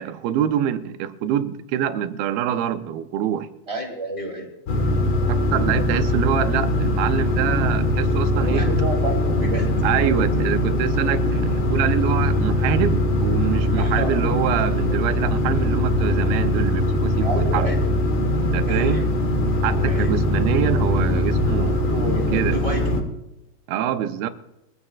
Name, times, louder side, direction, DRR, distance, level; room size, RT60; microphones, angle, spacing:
voice 1, 0.0-3.5 5.3-8.7 9.8-17.7 18.4-19.1 19.6-21.8 22.3-22.6 23.7-24.3, right 10 dB, 90° right, 2.6 m, -25 dB
voice 2, 3.7-4.5 8.3-9.7 13.7-14.2 17.2-17.9 18.7-19.0 19.8-20.1 21.6-23.0, right 1 dB, 20° right, 2.4 m, -30 dB
sound 1, 4.7-23.0, left 1 dB, 65° left, 1.3 m, -21 dB
23.0 x 14.5 x 2.4 m
omnidirectional pair, 4.2 m